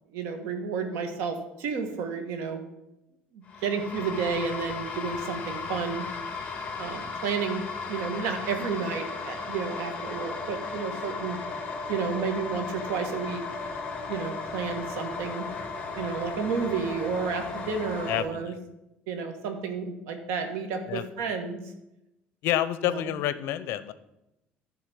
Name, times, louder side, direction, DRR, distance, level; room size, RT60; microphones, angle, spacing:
voice 1, 0.1-2.6 3.3-6.0 6.8-11.4 11.9-13.4 14.1-15.5 15.9-18.5 19.1-21.6 22.8-23.0, right 5 dB, 85° right, 6 dB, 1.5 m, -31 dB
sound 1, 3.5-18.2, left 4 dB, 25° left, 1.7 m, -36 dB
voice 2, 18.1-18.6 20.9-21.3 22.4-23.9, left 12 dB, 70° left, 14 dB, 0.6 m, -29 dB
11.5 x 3.9 x 7.0 m, 0.90 s
cardioid pair, 135°, 4 cm